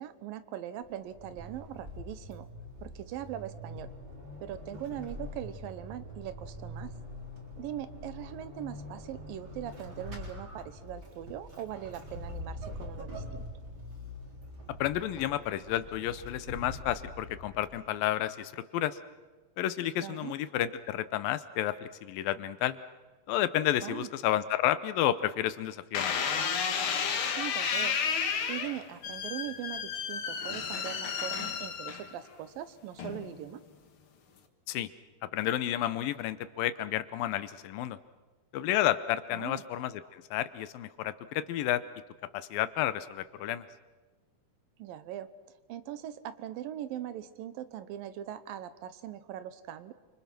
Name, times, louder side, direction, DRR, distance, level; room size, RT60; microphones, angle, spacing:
voice 1, 0.0-2.5 2.8-3.9 4.4-6.9 7.6-13.5 20.0-20.4 23.8-24.1 27.4-33.6 39.3-39.6 44.8-45.3 45.7-49.9, right 11 dB, 80° right, 13 dB, 2.7 m, -41 dB
Vehicle / Accelerating revving vroom / Squeak, 0.8-18.0, left 1 dB, 30° right, 4.4 m, -44 dB
voice 2, 14.8-19.0 19.6-22.8 23.3-26.3 34.7-34.9 35.2-38.0 38.5-41.8 42.3-43.7, left 12 dB, 80° left, 13 dB, 2.6 m, -31 dB
sound 1, 25.9-32.3 33.0-33.5, left 6 dB, 50° left, 1.7 m, -32 dB
29.0 x 25.0 x 6.0 m, 1.3 s
omnidirectional pair, 4.1 m